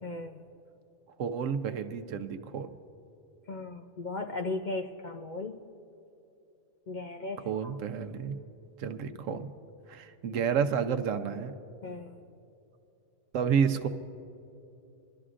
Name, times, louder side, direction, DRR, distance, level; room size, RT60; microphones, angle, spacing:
voice 1, 0.0-0.4 3.5-5.6 6.9-7.7 11.8-12.2, left 2 dB, 55° left, 4 dB, 0.5 m, -37 dB
voice 2, 1.2-2.7 7.4-8.3 8.8-9.5 9.9-11.5 13.3-13.9, right 7 dB, 85° right, 9 dB, 1.1 m, -30 dB
25.0 x 12.5 x 2.5 m, 2.8 s
omnidirectional pair, 1.3 m